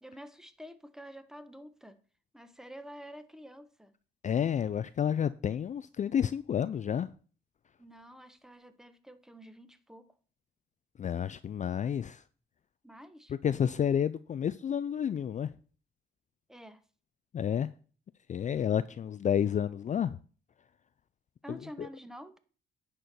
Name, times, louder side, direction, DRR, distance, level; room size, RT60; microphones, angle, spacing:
voice 1, 0.0-2.0 2.3-3.9 7.8-10.1 12.8-13.3 16.5-16.8 21.4-22.4, equal, ahead, 1.0 m, -48 dB
voice 2, 4.2-7.1 11.0-12.2 13.4-15.5 17.3-17.7 18.3-20.2 21.8-21.9, left 8 dB, 40° left, 0.4 m, -30 dB
10.0 x 4.5 x 6.8 m
cardioid pair, 90°, 20 cm